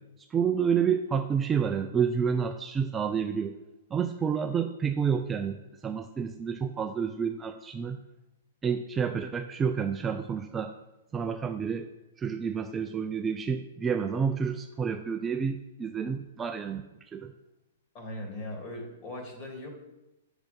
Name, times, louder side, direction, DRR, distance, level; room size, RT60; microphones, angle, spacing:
voice 1, 0.3-3.5 3.9-5.6 5.8-8.0 8.6-10.7 11.1-11.9 12.2-17.3, right 6 dB, 15° right, 6 dB, 0.4 m, -29 dB
voice 2, 17.9-19.7, left 1 dB, 30° left, 0 dB, 3.0 m, -39 dB
8.1 x 6.8 x 5.3 m, 0.97 s
hypercardioid pair, 145°, 0 cm